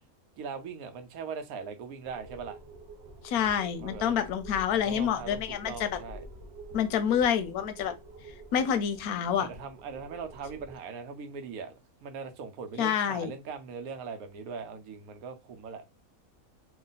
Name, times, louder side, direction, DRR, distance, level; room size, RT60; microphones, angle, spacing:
voice 1, 0.4-2.6 3.8-4.2 4.8-6.2 9.4-11.7 12.0-15.8, right 5 dB, 80° right, 1.1 m, -40 dB
sound 1, 2.0-10.7, right 1 dB, 50° right, 1.1 m, -47 dB
voice 2, 3.2-6.0 6.7-7.9 8.5-9.5 12.8-13.3, left 8 dB, 90° left, 1.1 m, -27 dB
3.0 x 2.4 x 3.9 m
omnidirectional pair, 1.5 m